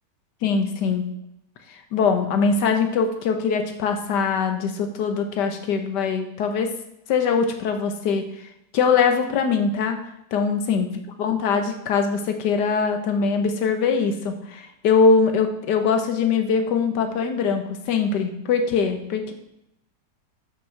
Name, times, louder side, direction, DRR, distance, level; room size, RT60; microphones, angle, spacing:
voice 1, 0.4-1.0 1.7-6.7 7.1-8.3 8.7-10.0 10.3-10.9 11.2-19.3, left 5 dB, 75° left, 6 dB, 1.6 m, -22 dB
7.7 x 6.0 x 4.4 m, 0.82 s
omnidirectional pair, 1.9 m